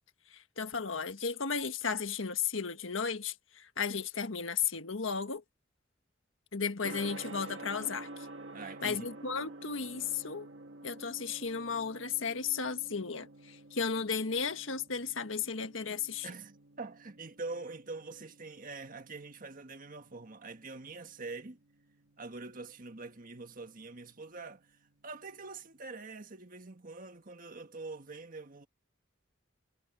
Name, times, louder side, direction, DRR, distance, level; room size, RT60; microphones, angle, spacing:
voice 1, 0.3-5.4 6.5-8.1 8.8-10.5 10.8-16.3, left 6 dB, 90° left, 1.6 m, -34 dB
Gong, 6.8-25.8, right 2 dB, 65° right, 1.9 m, -51 dB
voice 2, 8.5-9.1 16.2-21.6 22.2-24.7 25.0-28.7, right 3 dB, 45° right, 1.6 m, -44 dB
head